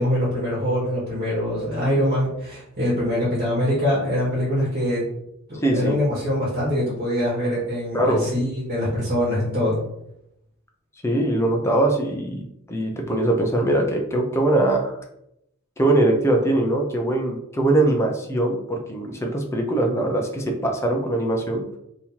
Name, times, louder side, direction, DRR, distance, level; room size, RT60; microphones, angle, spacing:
voice 1, 0.0-5.0 5.5-9.8, equal, 50° right, -7 dB, 1.3 m, -23 dB
voice 2, 5.6-6.0 7.9-8.2 11.0-14.9 15.8-21.7, right 1 dB, 15° left, 1 dB, 0.5 m, -22 dB
4.0 x 2.8 x 2.8 m, 0.79 s
head